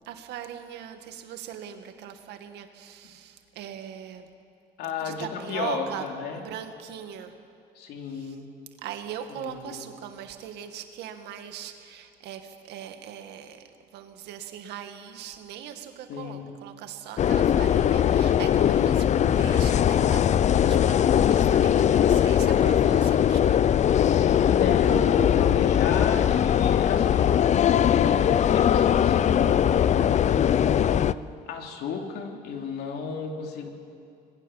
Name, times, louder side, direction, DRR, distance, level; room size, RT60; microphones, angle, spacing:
voice 1, 0.0-4.3 5.0-6.1 6.3-7.3 8.1-8.4 8.8-13.6 13.9-23.6, right 9 dB, 80° right, 7 dB, 2.1 m, -40 dB
voice 2, 4.8-6.4 7.7-8.5 9.4-9.8 16.1-16.5 24.1-27.4 27.9-31.0 31.5-33.7, left 5 dB, 75° left, 3 dB, 3.3 m, -33 dB
sound 1, 17.2-31.1, left 9 dB, 45° left, 0.6 m, -21 dB
26.0 x 20.5 x 7.4 m, 2.5 s
cardioid pair, 110°, 17 cm